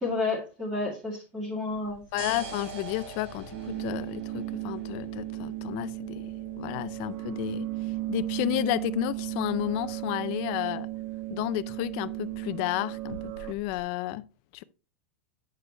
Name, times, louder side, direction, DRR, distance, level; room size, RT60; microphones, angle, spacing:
voice 1, 0.0-2.0 2.3-2.4, left 3 dB, 15° right, 2.3 m, -31 dB
sound 1, 1.7-13.8, right 3 dB, 70° right, 4.3 m, -47 dB
voice 2, 2.1-6.2 6.6-7.7 8.1-10.9 11.3-14.2 14.5-14.6, left 17 dB, 40° left, 0.4 m, -32 dB
sound 2, 3.5-13.5, right 19 dB, 35° right, 0.5 m, -35 dB
8.3 x 6.5 x 3.3 m
supercardioid pair, 175°, 7 cm